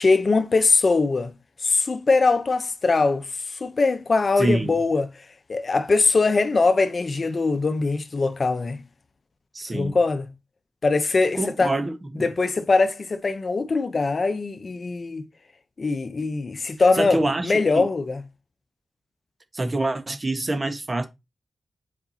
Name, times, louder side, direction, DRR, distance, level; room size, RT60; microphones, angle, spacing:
voice 1, 0.0-1.3 1.6-8.8 9.7-10.2 10.8-11.7 12.2-15.3 15.8-18.2, left 3 dB, 50° left, 0.9 m, -22 dB
voice 2, 4.4-4.8 9.5-10.0 11.3-12.3 16.9-17.8 19.5-21.1, right 2 dB, 35° right, 1.5 m, -26 dB
8.6 x 5.1 x 2.9 m
cardioid pair, 65°, 0 cm